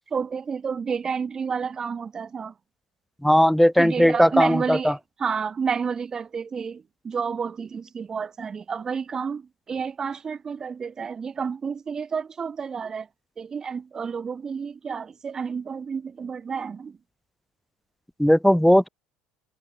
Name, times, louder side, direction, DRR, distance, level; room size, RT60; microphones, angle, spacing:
voice 1, 0.1-2.5 3.8-13.1 13.4-17.0, right 6 dB, 20° right, 1.1 m, -30 dB
voice 2, 3.2-4.8 18.2-18.9, equal, ahead, 0.4 m, -17 dB
cardioid pair, 145°, 3 cm